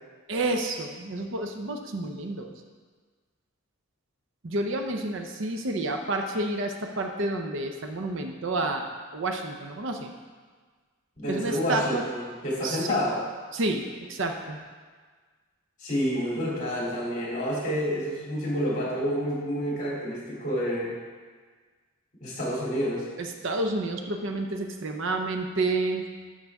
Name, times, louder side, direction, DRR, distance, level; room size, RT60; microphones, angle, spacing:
voice 1, 0.3-2.5 4.4-10.1 11.3-12.0 12.6-13.0 13.5-14.6 23.2-26.0, right 2 dB, 55° right, 4 dB, 0.7 m, -30 dB
voice 2, 11.2-13.2 15.8-20.9 22.2-23.1, equal, 35° left, -6 dB, 2.7 m, -29 dB
12.5 x 5.5 x 3.5 m, 1.5 s
head